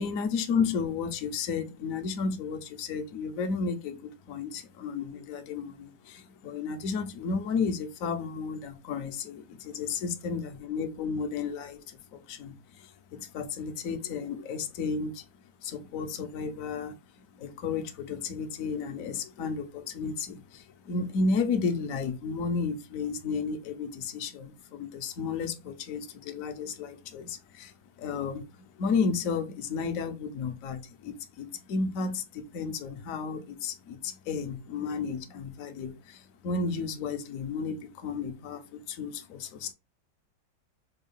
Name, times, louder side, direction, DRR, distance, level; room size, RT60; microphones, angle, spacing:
voice 1, 0.0-15.3 15.6-39.7, left 5 dB, 65° left, 0.9 m, -33 dB
4.5 x 2.3 x 3.4 m
omnidirectional pair, 1.9 m